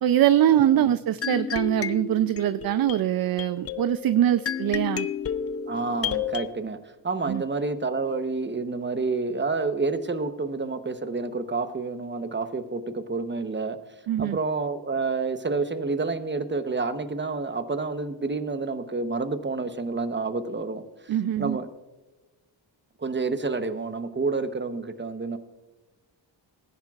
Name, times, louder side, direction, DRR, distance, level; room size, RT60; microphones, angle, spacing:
voice 1, 0.0-5.1 7.3-7.4 14.1-14.4 21.1-21.6, right 11 dB, 55° right, 12 dB, 0.5 m, -23 dB
voice 2, 0.5-0.9 5.7-6.8 7.0-13.8 14.2-21.7 23.0-25.4, right 3 dB, 25° right, 9 dB, 1.0 m, -29 dB
sound 1, 1.2-6.5, left 7 dB, 35° left, 0.5 m, -31 dB
19.5 x 10.5 x 2.4 m, 1.2 s
cardioid pair, 100°, 43 cm